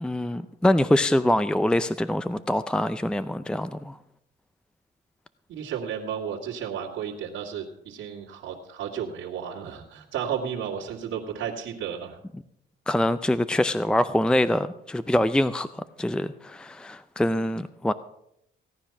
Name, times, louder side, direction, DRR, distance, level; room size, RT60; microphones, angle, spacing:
voice 1, 0.0-4.0 12.9-17.9, left 1 dB, 5° left, 13 dB, 0.5 m, -24 dB
voice 2, 5.5-12.2, right 8 dB, 85° right, -4 dB, 2.3 m, -33 dB
17.5 x 9.9 x 5.9 m, 0.79 s
cardioid pair, 90°, 20 cm